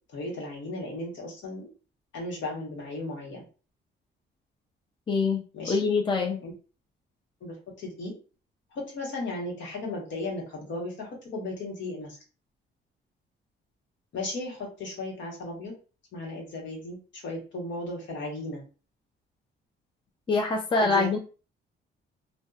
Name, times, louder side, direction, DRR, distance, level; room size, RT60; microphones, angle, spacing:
voice 1, 0.1-1.7 2.1-3.4 5.5-5.8 6.4-6.5 7.4-8.1 8.7-12.2 14.1-15.7 16.1-18.6 20.8-21.1, left 2 dB, 70° left, -1 dB, 1.1 m, -35 dB
voice 2, 5.1-5.4 5.7-6.4 20.3-21.2, left 4 dB, 25° left, 1 dB, 0.5 m, -24 dB
2.6 x 2.2 x 2.3 m, 0.36 s
cardioid pair, 90°, 20 cm